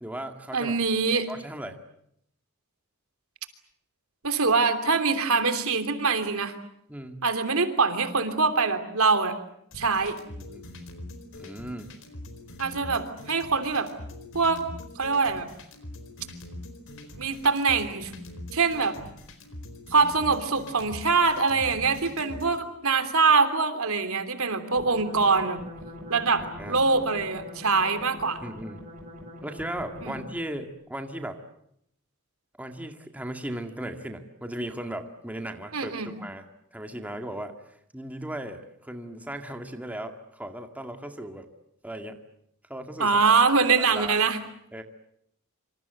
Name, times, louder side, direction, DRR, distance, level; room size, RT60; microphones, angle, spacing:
voice 1, 0.0-0.7 1.3-1.8 6.9-7.2 10.4-10.7 11.4-11.9 26.6-26.8 28.4-28.8 29.4-31.4 32.6-36.5 36.7-37.5 37.9-41.5 41.8-42.2 42.7-43.1 43.8-44.2 44.7-44.8, right 1 dB, 5° right, 5 dB, 2.0 m, -37 dB
voice 2, 0.5-1.3 4.2-6.5 7.2-9.3 9.7-10.2 12.6-13.9 14.3-14.6 14.9-15.5 17.2-18.1 18.5-19.0 19.9-25.6 26.1-28.4 30.0-30.1 35.7-36.1 43.0-44.4, right 4 dB, 75° right, 9 dB, 3.2 m, -24 dB
sound 1, 9.7-22.6, left 1 dB, 65° left, 4.3 m, -43 dB
sound 2, 24.8-30.5, left 1 dB, 40° right, 7.9 m, -43 dB
27.0 x 26.0 x 8.0 m, 0.74 s
head